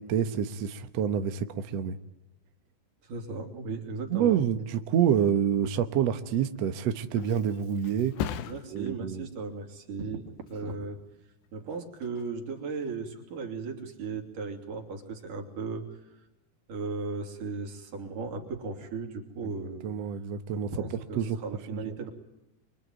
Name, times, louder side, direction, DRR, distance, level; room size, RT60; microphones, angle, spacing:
voice 1, 0.0-2.0 4.1-8.2 8.7-9.3 19.4-19.5 19.8-20.7 21.1-21.4 21.7-21.9, right 8 dB, 85° right, 9 dB, 1.4 m, -27 dB
voice 2, 3.0-4.4 8.5-11.0 11.5-15.9 16.7-19.9 20.5-22.1, right 4 dB, 55° right, 4 dB, 4.2 m, -36 dB
Thump thud, 6.6-14.1 14.5-14.9, left 9 dB, 90° left, 3.4 m, -42 dB
26.0 x 23.5 x 9.3 m, 0.99 s
omnidirectional pair, 4.8 m